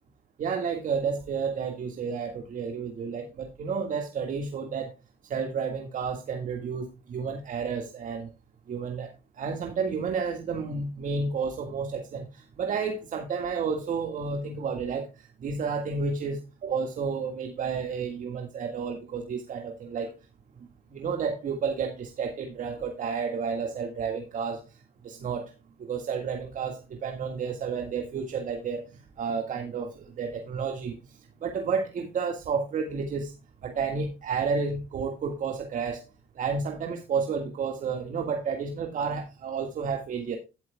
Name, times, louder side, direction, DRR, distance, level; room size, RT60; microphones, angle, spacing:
voice 1, 0.4-4.9 5.3-8.3 8.7-9.1 9.4-20.1 20.9-24.6 25.0-25.5 25.8-33.3 33.6-36.0 36.4-40.4, right 5 dB, 50° right, 5 dB, 1.8 m, -31 dB
12.5 x 12.0 x 2.2 m, 0.28 s
cardioid pair, 110°, 17 cm